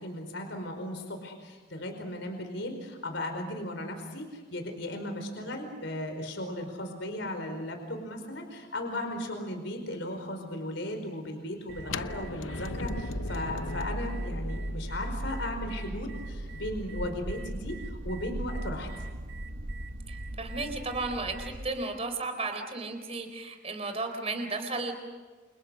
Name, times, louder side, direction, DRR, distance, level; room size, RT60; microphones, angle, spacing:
voice 1, 0.0-18.9, left 1 dB, 65° left, 5 dB, 4.9 m, -36 dB
sound 1, 11.7-21.7, right 1 dB, 75° right, 1.7 m, -38 dB
sound 2, 11.8-17.7, left 3 dB, 90° left, 0.9 m, -41 dB
voice 2, 20.1-24.9, right 3 dB, 30° right, 6 dB, 4.2 m, -34 dB
29.5 x 29.0 x 6.5 m, 1.4 s
head